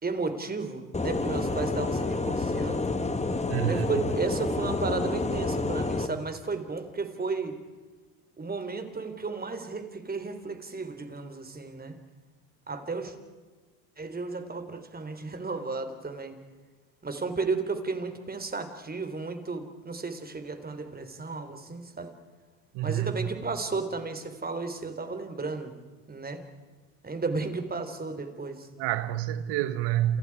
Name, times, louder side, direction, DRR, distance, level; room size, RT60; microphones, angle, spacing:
voice 1, 0.0-2.9 3.6-7.6 8.4-12.0 12.7-13.1 14.0-16.4 17.0-22.1 22.8-25.8 26.1-26.4 27.0-28.7, right 4 dB, 20° right, 3.8 m, -33 dB
sound 1, 0.9-6.1, left 3 dB, 15° left, 2.1 m, -29 dB
voice 2, 3.5-3.9 22.7-23.3 28.8-30.2, right 12 dB, 65° right, 1.8 m, -28 dB
29.5 x 28.0 x 4.9 m
supercardioid pair, 90°, 44 cm